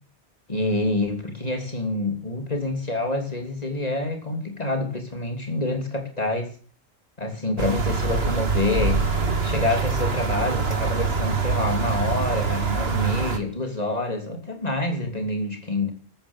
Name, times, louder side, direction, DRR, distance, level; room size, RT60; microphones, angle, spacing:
voice 1, 0.5-6.5 7.2-9.0 9.4-15.9, left 2 dB, 35° left, 4 dB, 3.3 m, -27 dB
sound 1, 7.6-13.4, right 5 dB, 65° right, 2.0 m, -24 dB
14.0 x 13.5 x 7.2 m, 0.41 s
omnidirectional pair, 1.1 m